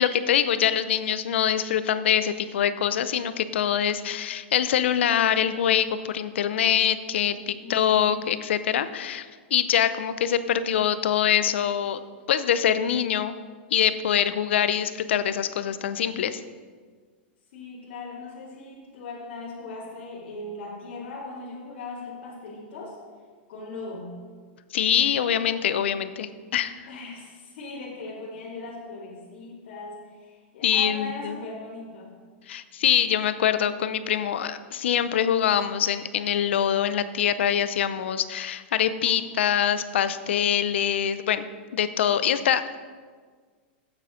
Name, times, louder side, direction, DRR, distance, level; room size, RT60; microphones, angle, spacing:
voice 1, 0.0-12.0 12.3-13.3 13.7-16.4 24.7-26.8 30.6-31.3 32.5-41.4 41.7-42.8, left 9 dB, 80° left, 12 dB, 0.6 m, -24 dB
voice 2, 7.6-8.1 17.5-23.0 23.5-24.2 26.9-32.2, left 2 dB, 65° left, -6 dB, 2.5 m, -39 dB
8.3 x 7.7 x 5.1 m, 1.6 s
supercardioid pair, 160°, 6 cm